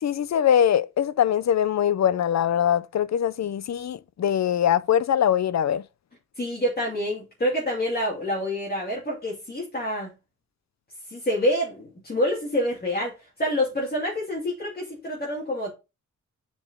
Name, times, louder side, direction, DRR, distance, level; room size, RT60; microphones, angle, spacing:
voice 1, 0.0-5.8, left 9 dB, 65° left, 0.5 m, -22 dB
voice 2, 6.4-10.1 11.1-13.1 13.4-15.7, left 1 dB, 30° left, 2.4 m, -27 dB
7.9 x 5.3 x 3.6 m
wide cardioid pair, 180°, 30 cm